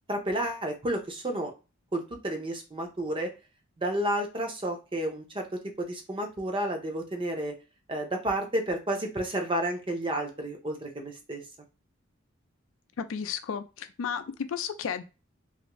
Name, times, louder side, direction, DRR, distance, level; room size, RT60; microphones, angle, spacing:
voice 1, 0.1-1.5 1.9-3.3 3.8-5.4 5.8-7.5 7.9-11.4, right 1 dB, 25° right, 3 dB, 0.6 m, -31 dB
voice 2, 13.0-15.0, left 7 dB, 85° left, 9 dB, 0.4 m, -33 dB
2.5 x 2.4 x 3.0 m, 0.30 s
head